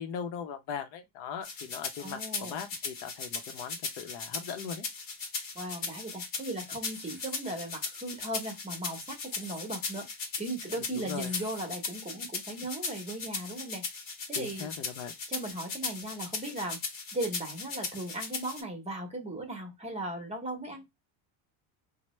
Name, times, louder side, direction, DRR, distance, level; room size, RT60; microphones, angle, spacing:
voice 1, 0.0-4.9 10.9-11.3 14.4-15.1, left 7 dB, 70° left, 0.7 m, -39 dB
sound 1, 1.4-18.6, left 4 dB, 45° left, 0.9 m, -38 dB
voice 2, 2.0-2.6 5.5-10.1 10.4-14.0 14.3-14.7 15.3-16.8 17.1-20.8, right 1 dB, 15° right, 0.8 m, -37 dB
sound 2, 6.9-7.4 9.0-9.6 11.1-11.6, left 1 dB, 10° left, 1.0 m, -49 dB
3.2 x 2.0 x 3.0 m
cardioid pair, 125°, 47 cm